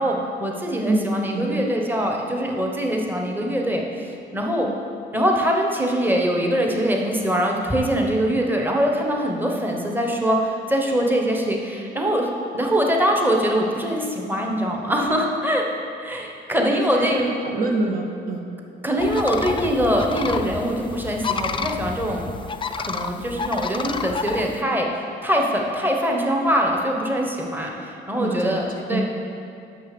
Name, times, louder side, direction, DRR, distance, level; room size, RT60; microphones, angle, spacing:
voice 1, 0.0-4.7 5.1-12.3 12.5-15.6 16.0-17.2 18.8-22.2 22.8-29.0, equal, 10° right, 0 dB, 1.1 m, -23 dB
voice 2, 16.6-18.4 28.2-29.0, right 2 dB, 45° right, 1 dB, 0.9 m, -25 dB
sound 1, 19.0-24.6, left 5 dB, 25° left, 0.4 m, -30 dB
6.7 x 5.8 x 6.8 m, 2.5 s
cardioid pair, 90°, 20 cm